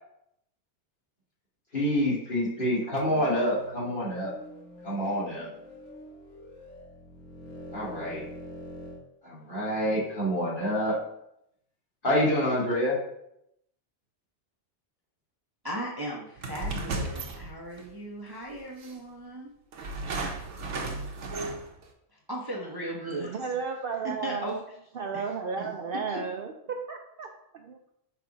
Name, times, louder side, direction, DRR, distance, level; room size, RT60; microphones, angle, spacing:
voice 1, 1.7-4.3 4.8-5.5 7.7-8.2 9.2-11.0 12.0-13.0, equal, 45° left, -8 dB, 2.5 m, -27 dB
sound 1, 2.8-9.0, left 1 dB, 85° left, 1.5 m, -45 dB
voice 2, 15.6-19.5 22.1-23.3 24.0-24.6 25.1-25.3 25.6-25.7 26.1-26.2, right 1 dB, 25° right, -2 dB, 0.7 m, -37 dB
sound 2, 16.4-17.9 18.8-18.9 19.7-21.8, right 2 dB, 85° right, 1.2 m, -34 dB
voice 3, 23.2-24.6 24.9-27.9, right 5 dB, 60° right, 4 dB, 0.6 m, -34 dB
5.8 x 3.4 x 4.9 m, 0.78 s
omnidirectional pair, 1.2 m